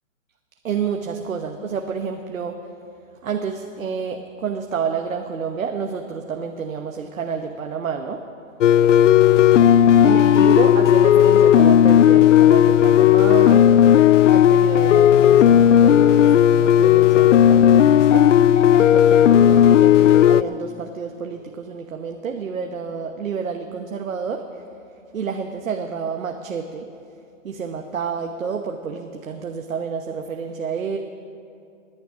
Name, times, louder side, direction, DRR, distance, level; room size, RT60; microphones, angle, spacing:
voice 1, 0.6-2.6 3.2-8.2 10.0-13.6 14.3-18.3 18.8-24.4 25.1-26.9 27.4-31.0, right 6 dB, 90° right, 4 dB, 1.2 m, -29 dB
sound 1, 8.6-20.4, left 10 dB, 65° left, 0.5 m, -13 dB
19.0 x 10.5 x 6.3 m, 2.5 s
hypercardioid pair, 165°, 39 cm